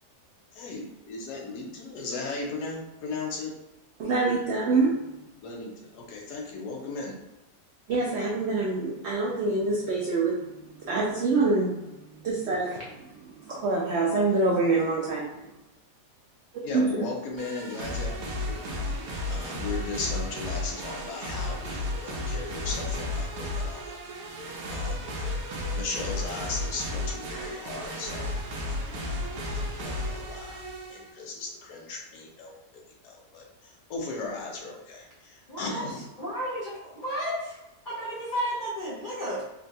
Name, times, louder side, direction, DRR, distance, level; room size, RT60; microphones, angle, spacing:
voice 1, 0.5-3.5 5.4-7.1 16.6-18.6 19.3-23.9 24.7-25.1 25.7-28.3 28.6-28.8 29.7-30.6 30.9-32.6 33.0-36.0, left 3 dB, 80° left, -1 dB, 1.3 m, -37 dB
voice 2, 4.0-5.0 7.9-15.3 16.7-17.0, right 3 dB, 90° right, -3 dB, 0.5 m, -26 dB
sound 1, 17.4-31.1, left 1 dB, 70° right, 1.1 m, -33 dB
voice 3, 35.5-35.8 36.2-37.6 37.8-39.4, equal, 45° left, -9 dB, 0.7 m, -32 dB
3.8 x 2.2 x 2.6 m, 0.97 s
omnidirectional pair, 1.7 m